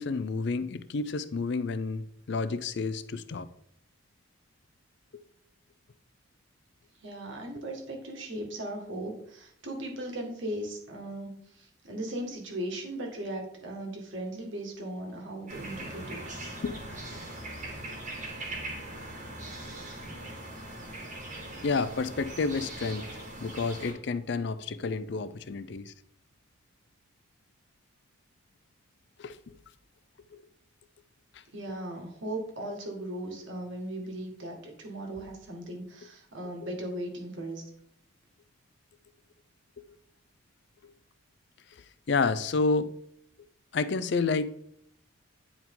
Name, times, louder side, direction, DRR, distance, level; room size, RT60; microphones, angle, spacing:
voice 1, 0.0-3.5 5.1-5.2 16.6-16.8 17.1-17.2 21.6-23.1 23.4-25.9 29.2-29.6 30.3-30.4 40.8-40.9 41.7-42.9 43.7-44.5, left 4 dB, 55° left, 0.4 m, -30 dB
voice 2, 7.0-16.2 31.5-37.6, right 1 dB, 65° right, 1.8 m, -38 dB
sound 1, 15.5-23.9, right 1 dB, 35° right, 1.8 m, -40 dB
9.7 x 4.7 x 3.7 m
head